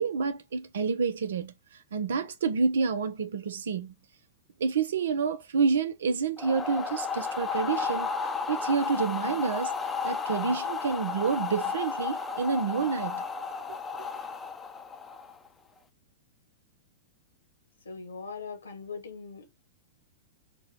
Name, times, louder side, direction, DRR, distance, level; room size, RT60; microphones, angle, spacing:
voice 1, 0.0-1.5 1.9-3.9 4.6-8.1 8.5-9.7 10.0-13.2 13.7-13.8, right 5 dB, 70° right, 0.6 m, -28 dB
sound 1, 6.4-15.5, left 5 dB, 15° left, 0.6 m, -33 dB
voice 2, 17.8-19.5, left 5 dB, 80° left, 1.4 m, -40 dB
3.9 x 2.2 x 4.4 m
figure-of-eight pair, 105°, 0 cm